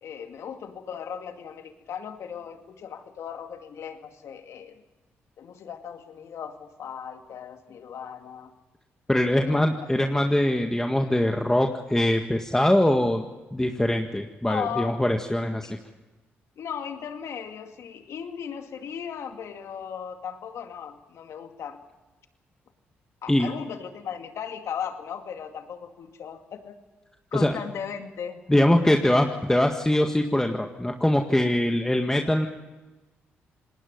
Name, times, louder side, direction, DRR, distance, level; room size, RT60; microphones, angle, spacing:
voice 1, 0.0-4.8 5.4-8.5 9.4-9.9 14.5-14.9 15.7-15.8 16.6-21.8 23.2-26.8 27.3-28.4, left 7 dB, 70° left, 6 dB, 2.3 m, -37 dB
voice 2, 9.1-13.2 13.5-15.8 23.3-23.5 27.3-27.6 28.5-32.5, left 1 dB, 10° left, 3 dB, 1.8 m, -22 dB
27.5 x 20.0 x 5.4 m, 1.1 s
supercardioid pair, 55°, 5 cm